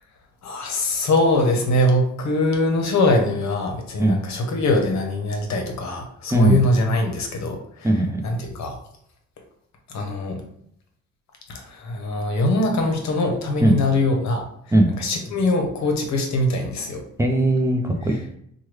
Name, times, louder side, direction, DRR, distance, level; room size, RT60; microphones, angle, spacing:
voice 1, 0.4-8.8 9.9-10.4 11.5-14.5 15.0-17.0, left 1 dB, 65° left, 3 dB, 0.8 m, -22 dB
voice 2, 6.3-6.6 7.8-8.2 13.6-13.8 14.7-14.9 17.2-18.4, right 1 dB, 10° right, 1 dB, 0.4 m, -19 dB
3.1 x 2.2 x 3.1 m, 0.69 s
cardioid pair, 90°, 30 cm